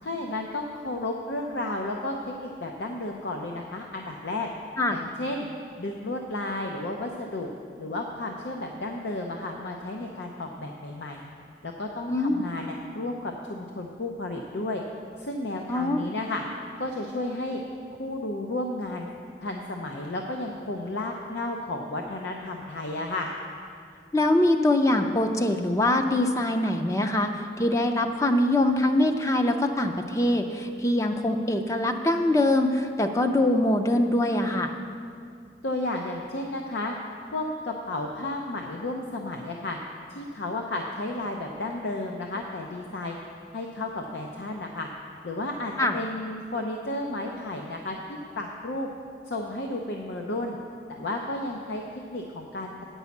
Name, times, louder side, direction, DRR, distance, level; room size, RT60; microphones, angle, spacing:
voice 1, 0.0-4.5 4.9-5.5 5.8-7.5 7.8-11.2 11.6-14.8 15.2-16.4 16.8-17.6 18.0-19.1 19.4-23.3 35.6-37.0 37.3-39.8 40.1-43.2 43.5-44.9 45.2-48.0 48.4-48.9 49.3-50.6 50.9-51.8 52.1-52.7, left 2 dB, 80° left, 2 dB, 0.6 m, -32 dB
voice 2, 12.1-12.4 15.7-16.0 24.1-34.7 45.8-46.0, left 1 dB, 15° left, 5 dB, 0.4 m, -23 dB
9.4 x 5.5 x 7.1 m, 2.3 s
head